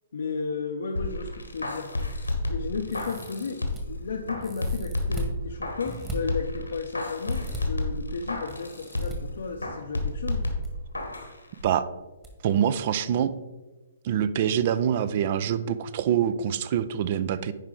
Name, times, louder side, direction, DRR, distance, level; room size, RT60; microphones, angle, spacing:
voice 1, 0.1-10.5, left 4 dB, 65° left, 3 dB, 0.6 m, -34 dB
sound 1, 1.0-3.9 4.3-6.0 6.3-9.3 9.6-11.3 11.6-11.7, left 2 dB, 90° left, 1.3 m, -31 dB
sound 2, 2.9-3.8 4.4-5.3 5.8-6.2 7.3-7.6 8.5-9.2 10.3-10.7 11.0-11.1 12.2-12.3 12.7-12.8, right 1 dB, 20° right, 1.6 m, -39 dB
voice 2, 12.4-13.3 14.0-17.5, right 9 dB, 45° right, 15 dB, 0.4 m, -25 dB
10.0 x 4.8 x 3.7 m, 1.2 s
figure-of-eight pair, 125°, 0 cm